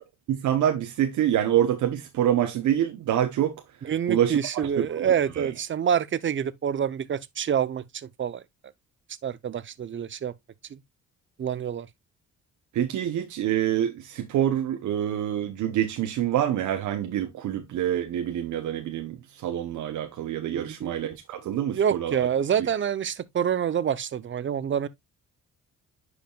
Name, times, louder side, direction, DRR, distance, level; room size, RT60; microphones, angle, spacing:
voice 1, 0.3-3.6 4.1-5.5 12.7-22.3, right 11 dB, 80° right, 1.0 m, -26 dB
voice 2, 3.8-8.4 9.2-10.3 10.7-10.8 11.4-11.9 20.5-20.9 21.7-24.9, right 8 dB, 40° right, 0.7 m, -27 dB
10.5 x 4.9 x 2.3 m
cardioid pair, 90°, 30 cm